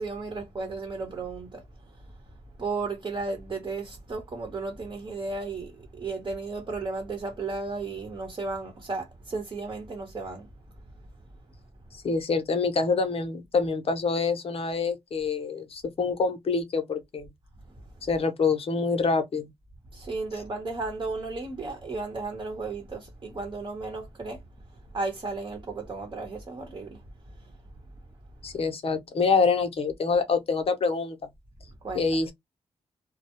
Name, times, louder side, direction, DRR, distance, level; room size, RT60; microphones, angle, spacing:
voice 1, 0.0-1.6 2.6-10.5 19.9-24.4 24.9-27.0 31.8-32.1, right 3 dB, 40° right, 0.9 m, -34 dB
voice 2, 12.0-17.3 18.0-19.5 28.4-31.2 31.9-32.3, left 4 dB, 55° left, 0.7 m, -26 dB
2.2 x 2.1 x 2.9 m
cardioid pair, 90°, 12 cm